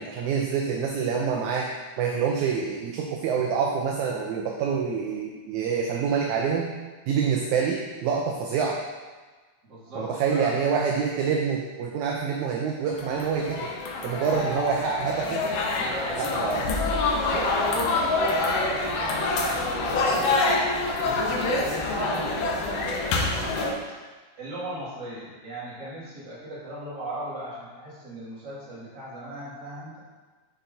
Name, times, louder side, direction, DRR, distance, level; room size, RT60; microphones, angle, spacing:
voice 1, 0.0-1.7 2.0-6.7 7.1-8.8 10.0-13.7 14.0-15.4 16.2-16.7, right 6 dB, 80° right, 0 dB, 1.8 m, -26 dB
voice 2, 9.7-10.6 14.3-14.6 15.7-16.9 17.2-20.5 21.0-23.5 24.4-30.0, equal, 35° right, -9 dB, 2.5 m, -36 dB
sound 1, 12.9-23.7, left 3 dB, 85° left, 2.4 m, -26 dB
8.7 x 5.6 x 2.7 m, 1.3 s
omnidirectional pair, 3.7 m